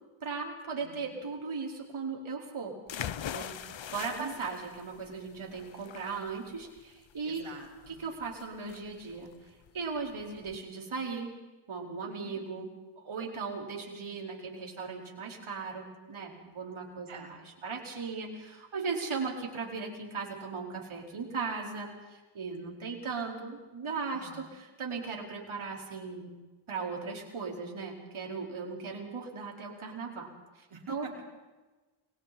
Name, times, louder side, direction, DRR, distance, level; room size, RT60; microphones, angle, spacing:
voice 1, 0.2-2.7 3.3-3.5 3.9-7.4 8.0-9.3 9.7-11.4 11.7-12.7 13.0-17.2 17.6-26.3 26.7-30.3 30.6-31.1, right 4 dB, 70° right, -1 dB, 5.0 m, -37 dB
voice 2, 0.8-1.2 4.1-4.4 7.2-8.0 12.1-12.4 17.1-17.4 24.0-24.5 30.7-31.2, right 5 dB, 85° right, -2 dB, 5.5 m, -46 dB
sound 1, 2.9-10.6, left 9 dB, 65° left, 0.9 m, -43 dB
30.0 x 22.0 x 4.4 m, 1.2 s
cardioid pair, 75°, 50 cm